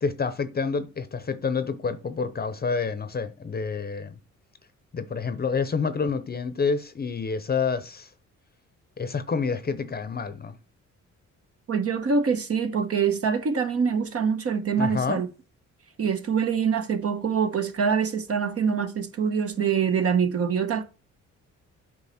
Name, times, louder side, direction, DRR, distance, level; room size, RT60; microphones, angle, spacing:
voice 1, 0.0-4.2 4.9-8.1 9.0-10.6 14.8-15.2, left 5 dB, 30° left, 0.8 m, -28 dB
voice 2, 11.7-15.3 16.0-20.8, right 6 dB, 50° right, 1.1 m, -25 dB
8.5 x 5.2 x 4.3 m
cardioid pair, 90°, 30 cm